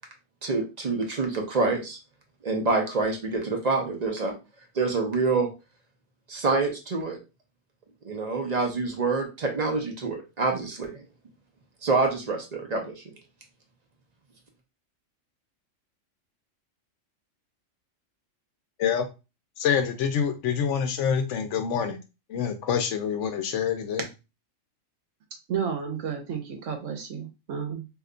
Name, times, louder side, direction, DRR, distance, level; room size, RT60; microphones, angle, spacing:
voice 1, 0.4-2.0 2.4-4.3 4.7-5.5 6.3-7.2 8.0-11.0 11.8-13.1, right 3 dB, 45° right, 2 dB, 0.6 m, -26 dB
voice 2, 19.6-22.0 22.3-24.0, left 7 dB, 70° left, 7 dB, 0.9 m, -26 dB
voice 3, 25.5-27.9, right 7 dB, 70° right, 5 dB, 1.1 m, -32 dB
2.7 x 2.2 x 3.7 m, 0.28 s
omnidirectional pair, 1.3 m